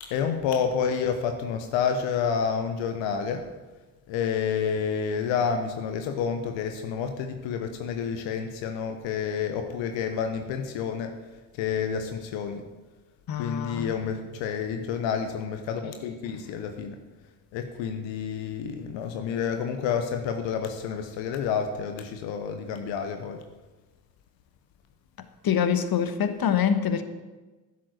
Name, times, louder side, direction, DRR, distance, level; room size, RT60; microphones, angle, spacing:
voice 1, 0.0-3.5 4.1-11.2 11.5-12.6 13.4-17.0 17.5-23.4, left 7 dB, 80° left, 6 dB, 1.1 m, -29 dB
voice 2, 13.3-13.9 25.4-27.0, left 8 dB, 55° left, 10 dB, 1.3 m, -25 dB
11.0 x 7.5 x 8.1 m, 1.2 s
hypercardioid pair, 50°, 44 cm